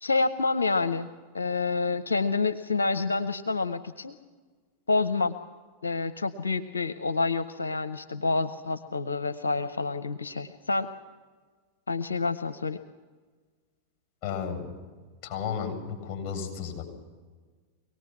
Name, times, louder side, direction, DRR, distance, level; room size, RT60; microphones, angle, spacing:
voice 1, 0.0-4.2 4.9-5.3 5.8-10.9 11.9-12.8, left 3 dB, 90° left, 10 dB, 0.7 m, -28 dB
voice 2, 14.2-14.6 15.2-16.8, left 7 dB, 35° left, 3 dB, 7.8 m, -33 dB
24.5 x 19.0 x 5.9 m, 1.4 s
hypercardioid pair, 95°, 0 cm